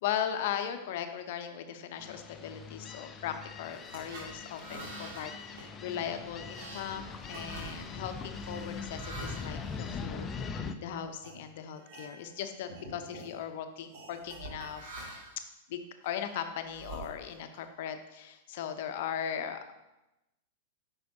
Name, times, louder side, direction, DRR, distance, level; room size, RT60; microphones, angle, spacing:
voice 1, 0.0-14.9 15.4-15.5 15.7-19.6, left 9 dB, 60° left, 8 dB, 0.7 m, -38 dB
sound 1, 2.0-10.8, left 5 dB, 25° left, 0.6 m, -42 dB
sound 2, 3.6-10.7 11.2-11.4 11.8-12.4 12.6-13.3 13.9-15.4 16.0-17.6, right 2 dB, 60° right, 2.5 m, -47 dB
9.3 x 5.7 x 2.8 m, 0.97 s
hypercardioid pair, 100°, 0 cm